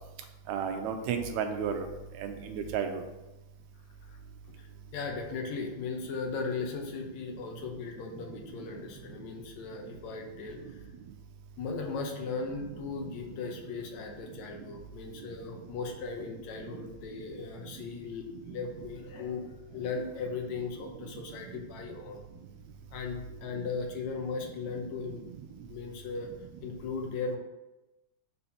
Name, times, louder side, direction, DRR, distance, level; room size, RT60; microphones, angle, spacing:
voice 1, 0.5-1.9 2.2-3.0 13.0-13.1, right 7 dB, 80° right, 6 dB, 1.9 m, -32 dB
voice 2, 4.6-10.8 11.6-22.2 22.9-25.2 25.7-26.3 26.6-27.4, left 4 dB, 75° left, 2 dB, 2.0 m, -37 dB
5.8 x 4.1 x 5.6 m, 1.0 s
omnidirectional pair, 3.4 m